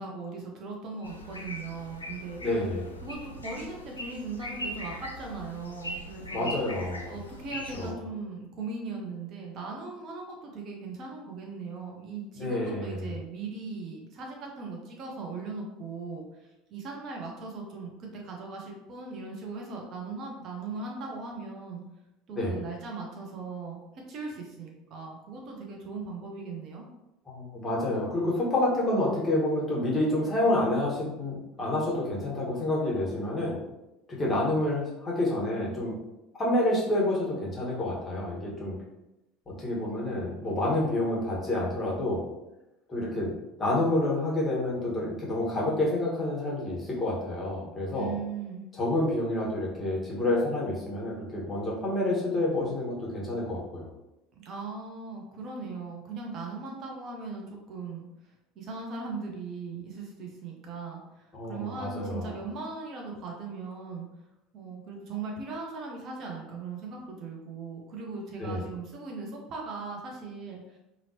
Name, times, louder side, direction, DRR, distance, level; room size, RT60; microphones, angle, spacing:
voice 1, 0.0-2.4 3.0-6.5 7.1-21.8 22.3-23.8 24.1-26.9 47.9-48.7 54.4-58.1 58.6-64.1 64.5-70.8, right 4 dB, 45° right, 0 dB, 0.7 m, -39 dB
sound 1, 1.0-7.9, left 1 dB, 90° left, 0.3 m, -40 dB
voice 2, 2.4-3.0 6.3-7.1 7.7-8.0 12.4-13.1 22.3-22.5 27.3-33.6 34.1-36.0 36.3-38.8 39.5-42.2 42.9-43.3 43.6-48.1 48.8-53.9 61.3-62.4 68.4-68.6, left 1 dB, 20° left, -5 dB, 1.3 m, -28 dB
2.9 x 2.8 x 2.7 m, 0.94 s
figure-of-eight pair, 70°, 0 cm